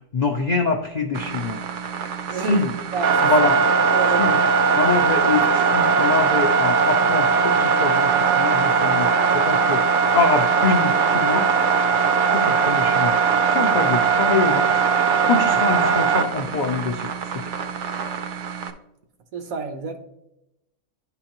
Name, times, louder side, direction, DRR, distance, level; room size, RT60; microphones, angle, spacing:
voice 1, 0.1-1.6 2.4-2.7 3.2-3.6 4.2-4.3 4.7-5.5 5.7-9.1 9.3-9.8 10.1-11.5 12.3-13.1 13.5-14.7 15.2-17.1, left 4 dB, 75° left, 3 dB, 0.4 m, -24 dB
sound 1, 1.1-18.7, right 5 dB, 65° right, 0.9 m, -20 dB
voice 2, 2.3-3.5 3.9-4.4 19.3-20.0, right 5 dB, 85° right, 6 dB, 1.3 m, -30 dB
10.5 x 3.9 x 2.9 m, 0.86 s
omnidirectional pair, 1.4 m